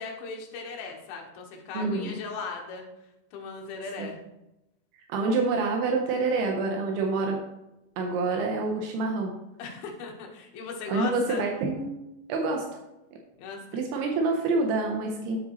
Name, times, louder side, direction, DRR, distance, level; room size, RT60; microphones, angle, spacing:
voice 1, 0.0-2.8 3.3-4.2 9.6-11.5 13.4-13.8, left 4 dB, 70° left, 1 dB, 3.1 m, -37 dB
voice 2, 1.7-2.1 4.0-4.1 5.1-7.4 8.0-9.3 10.9-11.9 12.3-12.8 13.7-15.4, right 3 dB, 80° right, 2 dB, 3.0 m, -27 dB
9.9 x 8.1 x 3.1 m, 0.91 s
omnidirectional pair, 4.6 m